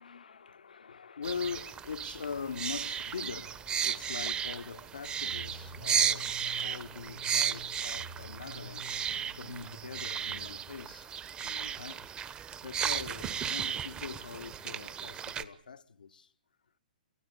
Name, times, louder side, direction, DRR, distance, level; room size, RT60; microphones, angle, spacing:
voice 1, 0.0-6.3 6.6-11.1 11.4-12.1 12.6-16.3, left 6 dB, 80° left, 0.9 m, -42 dB
sound 1, 1.2-15.4, right 8 dB, 20° right, 1.1 m, -34 dB
sound 2, 5.3-10.6, right 1 dB, 85° right, 4.1 m, -48 dB
29.5 x 13.5 x 8.3 m
hypercardioid pair, 120°, 5 cm